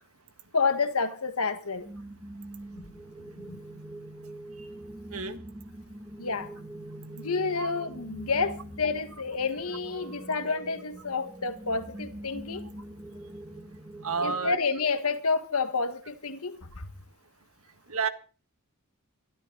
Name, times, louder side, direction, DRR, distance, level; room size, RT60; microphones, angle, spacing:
voice 1, 0.5-1.9 2.7-2.9 3.4-3.6 6.2-6.5 7.2-12.6 14.2-16.9, left 4 dB, 75° left, 1.7 m, -29 dB
sound 1, 1.8-14.5, right 1 dB, 20° right, 2.5 m, -44 dB
voice 2, 14.0-14.6 17.9-18.1, right 5 dB, 75° right, 1.8 m, -30 dB
22.5 x 13.0 x 4.1 m
head